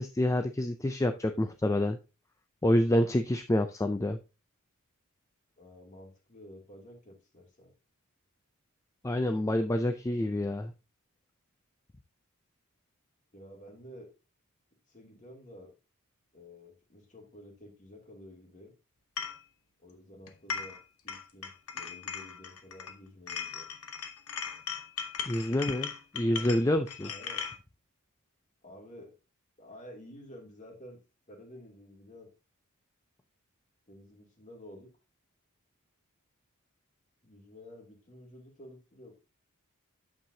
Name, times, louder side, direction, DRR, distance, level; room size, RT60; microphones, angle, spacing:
voice 1, 0.0-2.0 2.6-4.2 9.0-10.7 25.3-27.1, left 1 dB, 15° left, 0.4 m, -27 dB
voice 2, 5.6-7.7 13.3-14.1 14.9-15.7 16.3-18.7 19.8-20.8 21.0-23.7 26.2-26.5 27.1-27.4 28.6-29.2 29.6-31.0 31.3-32.3 33.9-34.9 37.2-39.1, equal, 35° left, 2.6 m, -51 dB
sound 1, 19.2-19.4 20.3-20.8 21.1-22.9 23.3-27.6, left 7 dB, 80° left, 1.1 m, -38 dB
8.9 x 7.4 x 2.7 m
head